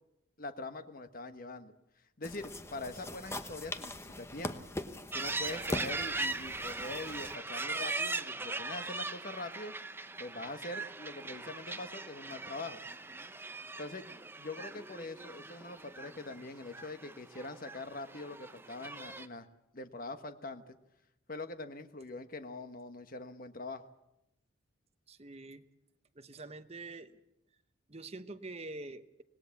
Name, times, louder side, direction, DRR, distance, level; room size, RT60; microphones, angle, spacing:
voice 1, 0.4-1.7 2.2-4.5 5.1-9.7 10.2-12.8 13.8-19.5 19.7-20.8 21.3-23.8, left 2 dB, 45° left, 9 dB, 1.4 m, -43 dB
sound 1, 2.2-7.4, left 1 dB, 15° left, 1.1 m, -41 dB
sound 2, 5.1-19.3, right 3 dB, 10° right, 0.7 m, -40 dB
voice 2, 25.1-25.6 26.1-27.2 27.9-29.2, right 2 dB, 30° right, 9 dB, 1.1 m, -46 dB
25.5 x 19.5 x 7.2 m, 0.88 s
head